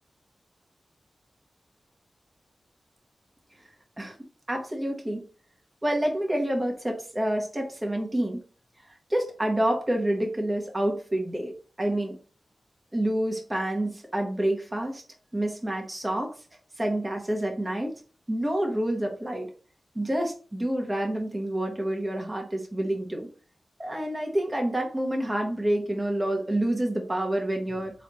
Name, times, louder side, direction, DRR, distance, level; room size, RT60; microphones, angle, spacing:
voice 1, 4.5-5.2 5.8-8.4 9.1-11.5 11.8-12.2 12.9-15.0 15.3-16.3 16.8-17.9 18.3-19.5 19.9-23.3 23.8-27.9, right 1 dB, 20° right, 1 dB, 1.1 m, -28 dB
4.1 x 3.2 x 3.0 m, 0.38 s
wide cardioid pair, 80°, 0 cm